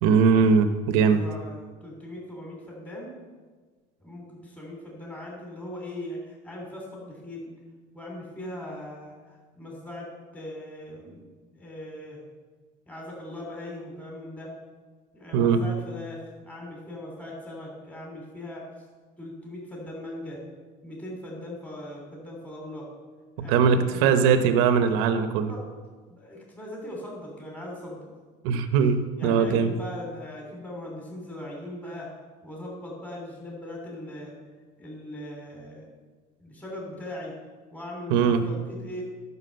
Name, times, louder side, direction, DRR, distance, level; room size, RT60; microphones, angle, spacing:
voice 1, 0.0-1.2 15.3-15.6 23.4-25.5 28.4-29.7 38.1-38.4, right 6 dB, 80° right, 10 dB, 0.9 m, -21 dB
voice 2, 1.0-3.1 4.0-7.5 7.9-11.3 11.5-12.2 12.8-14.5 15.1-18.7 19.2-20.4 20.8-22.9 23.4-24.5 25.5-25.6 26.1-28.1 29.2-32.1 32.4-34.3 34.8-35.9 36.4-37.3 37.7-39.0, left 1 dB, 10° left, -2 dB, 3.2 m, -39 dB
11.0 x 6.2 x 7.7 m, 1.4 s
cardioid pair, 125°, 18 cm